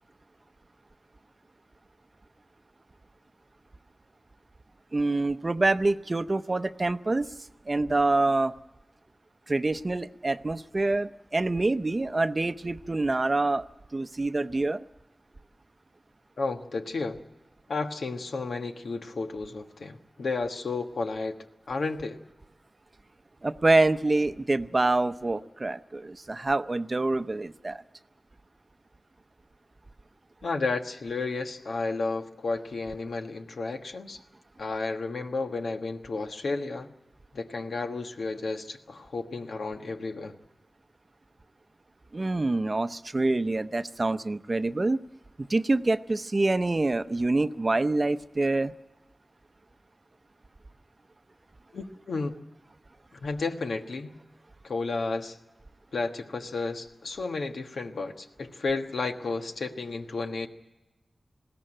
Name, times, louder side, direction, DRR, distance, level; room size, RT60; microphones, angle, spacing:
voice 1, 4.9-7.3 7.7-8.5 9.5-13.6 13.9-14.8 23.4-27.8 42.1-45.0 45.4-48.7, right 2 dB, 35° right, 12 dB, 0.6 m, -26 dB
voice 2, 16.4-17.2 17.7-21.4 21.7-22.2 30.4-34.2 34.6-36.9 37.3-40.3 51.7-52.4 53.2-54.1 54.6-55.4 55.9-60.5, left 3 dB, 85° left, 5 dB, 1.4 m, -32 dB
20.5 x 16.5 x 8.9 m, 1.0 s
wide cardioid pair, 100°, 0 cm